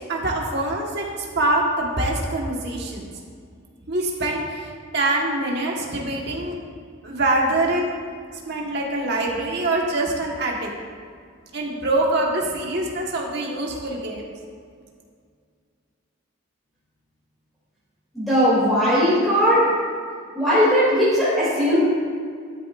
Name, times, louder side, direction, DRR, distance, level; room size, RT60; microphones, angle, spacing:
voice 1, 0.1-3.1 3.9-6.6 7.0-7.8 8.3-10.7 11.5-14.2, right 2 dB, 50° right, -2 dB, 1.5 m, -24 dB
voice 2, 18.1-19.6 20.3-21.8, equal, ahead, -11 dB, 2.7 m, -18 dB
12.0 x 11.0 x 2.6 m, 2.1 s
head